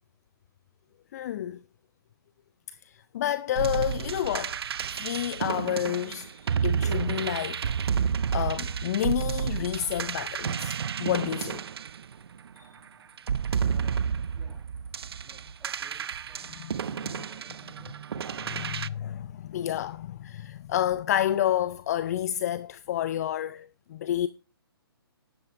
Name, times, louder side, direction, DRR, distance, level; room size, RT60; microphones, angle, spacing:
voice 1, 1.1-1.6 2.8-4.6 4.9-7.6 8.3-11.6 12.6-12.7 16.6-17.2 18.4-24.3, left 11 dB, 40° left, 0.4 m, -30 dB
sound 1, 3.6-12.6 13.2-18.9, right 7 dB, 70° right, 0.4 m, -31 dB
voice 2, 13.6-14.6 15.2-16.7 17.1-17.9, equal, 5° right, 6.8 m, -55 dB
13.0 x 10.5 x 2.5 m
hypercardioid pair, 140°, 13 cm